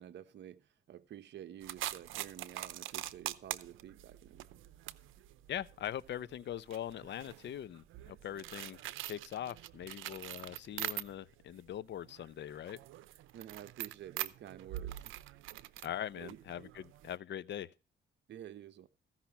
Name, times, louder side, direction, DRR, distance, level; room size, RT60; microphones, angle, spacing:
voice 1, 0.0-4.6 13.3-15.2 15.6-15.9 16.2-16.4 18.3-18.9, right 11 dB, 65° right, 0.9 m, -50 dB
sound 1, 1.6-11.4 11.8-17.2, right 14 dB, 90° right, 0.7 m, -44 dB
voice 2, 5.5-8.8 9.0-12.8 15.8-17.7, left 11 dB, 65° left, 0.7 m, -42 dB
15.5 x 5.8 x 5.8 m
cardioid pair, 90°, 20 cm